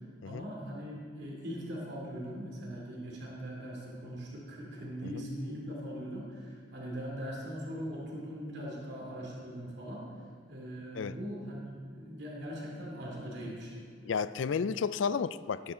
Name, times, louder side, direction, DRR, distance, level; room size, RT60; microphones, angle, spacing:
voice 1, 0.2-10.1 10.5-13.8, equal, 65° right, -2 dB, 2.8 m, -40 dB
voice 2, 14.0-15.7, left 6 dB, 85° left, 15 dB, 0.4 m, -32 dB
18.5 x 10.5 x 3.8 m, 2.1 s
head